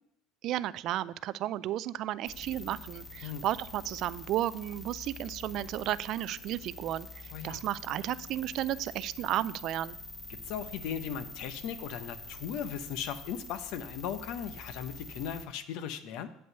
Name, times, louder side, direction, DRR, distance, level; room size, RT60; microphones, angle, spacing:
voice 1, 0.4-7.1 7.4-10.0, right 13 dB, 60° right, 18 dB, 0.3 m, -33 dB
sound 1, 2.2-15.4, left 2 dB, 25° left, 1.3 m, -46 dB
voice 2, 7.3-7.6 10.4-16.3, left 8 dB, 70° left, 11 dB, 0.7 m, -37 dB
7.9 x 5.4 x 6.7 m, 0.77 s
supercardioid pair, 90°, 0 cm